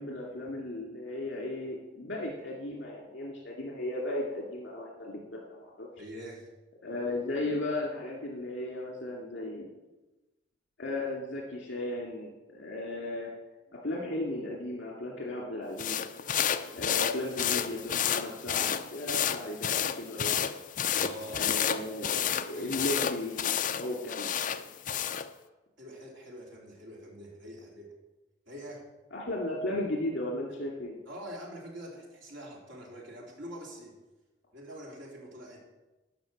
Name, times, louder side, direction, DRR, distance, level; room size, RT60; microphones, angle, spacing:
voice 1, 0.0-5.9 6.8-9.7 10.8-13.3 13.7-16.0 16.7-20.5 21.3-24.4 29.1-31.0, left 1 dB, 65° left, -3 dB, 2.2 m, -35 dB
voice 2, 6.0-6.5 20.9-21.7 22.5-22.8 25.8-27.9 28.4-28.9 31.1-34.0 34.5-35.6, equal, 80° right, -2 dB, 3.1 m, -45 dB
sound 1, 15.8-25.3, left 9 dB, 45° left, 0.5 m, -31 dB
12.0 x 5.3 x 7.3 m, 1.1 s
head